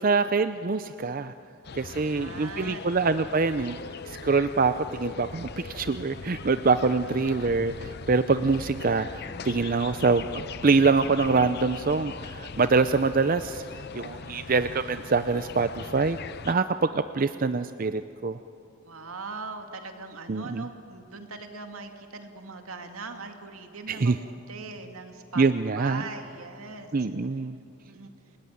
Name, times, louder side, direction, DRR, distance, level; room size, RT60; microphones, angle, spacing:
voice 1, 0.0-1.3 1.7-3.8 4.1-4.7 5.0-13.6 13.9-16.2 16.5-18.4 20.3-20.7 23.9-24.2 25.4-26.0 26.9-27.6, right 4 dB, 40° right, 11 dB, 0.5 m, -25 dB
sound 1, 1.6-16.6, left 4 dB, 50° left, 0.7 m, -40 dB
voice 2, 2.1-3.0 18.8-25.5 25.8-26.9 27.9-28.1, right 3 dB, 80° right, 5 dB, 2.4 m, -40 dB
28.5 x 20.0 x 9.4 m, 2.6 s
head